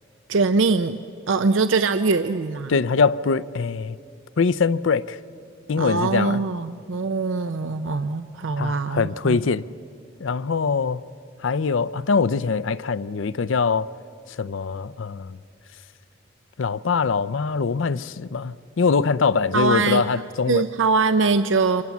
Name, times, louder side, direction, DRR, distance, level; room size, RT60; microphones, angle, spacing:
voice 1, 0.3-1.0 1.3-2.8 5.8-9.4 19.5-20.0 20.5-21.8, right 4 dB, 85° right, 0.6 m, -22 dB
voice 2, 2.7-4.0 4.4-5.2 5.7-6.4 8.6-9.6 10.2-11.0 11.4-13.9 14.4-15.4 16.6-20.6, left 5 dB, 85° left, 0.5 m, -23 dB
28.0 x 24.5 x 7.2 m
head